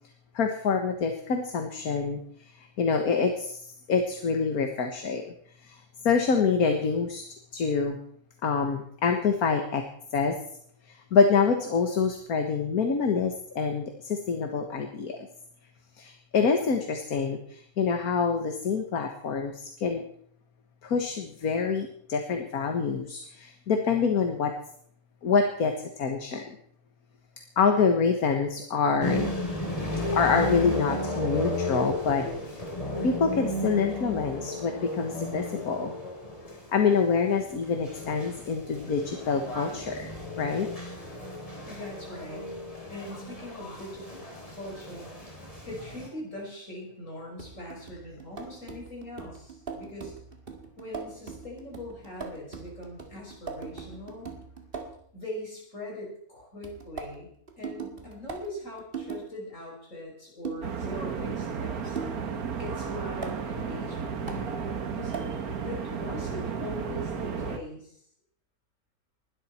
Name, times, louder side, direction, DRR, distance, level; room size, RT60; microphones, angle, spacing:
voice 1, 0.3-2.2 2.6-3.6 3.9-5.2 5.6-5.8 6.0-7.2 7.5-8.0 8.4-9.8 10.1-10.4 11.1-15.2 16.0-20.0 20.8-24.5 25.2-26.5 27.6-29.3 30.1-32.2 33.0-35.9 36.7-40.1 40.4-40.7, left 5 dB, 75° left, 5 dB, 1.9 m, -26 dB
sound 1, 29.0-46.1, left 1 dB, 20° left, 3.8 m, -34 dB
voice 2, 41.6-42.4 42.9-45.1 45.7-50.1 50.8-54.3 55.1-57.3 57.6-62.0 62.6-65.1 65.6-68.0, left 1 dB, 55° left, -2 dB, 6.1 m, -41 dB
sound 2, 47.4-55.0 56.6-59.3 60.4-60.7 62.0-62.3 63.2-63.4 64.3-64.5 65.1-65.4, right 5 dB, 40° right, 2.1 m, -40 dB
sound 3, 60.6-67.6, right 6 dB, 75° right, 1.9 m, -33 dB
20.5 x 12.5 x 4.3 m, 0.65 s
omnidirectional pair, 1.6 m